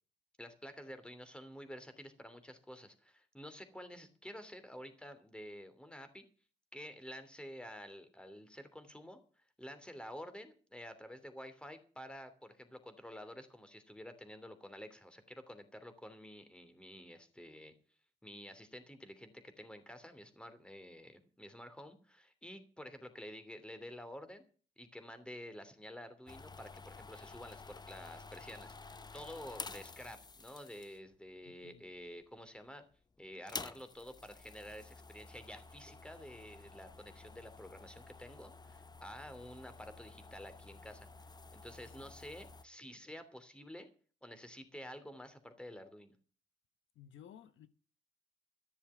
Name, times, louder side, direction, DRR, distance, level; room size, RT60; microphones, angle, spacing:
voice 1, 0.4-6.2 6.7-9.2 9.6-17.7 18.2-24.4 24.8-32.8 33.2-41.1 41.5-43.9 44.2-46.1, equal, 5° left, 3.0 m, -50 dB
sound 1, 26.3-31.2 31.9-32.4 32.7-32.8 33.3-42.6, left 3 dB, 20° left, 0.8 m, -51 dB
voice 2, 31.4-31.9 42.0-42.1 46.9-47.7, left 9 dB, 70° left, 1.1 m, -56 dB
14.0 x 7.2 x 8.9 m
cardioid pair, 90°, 20 cm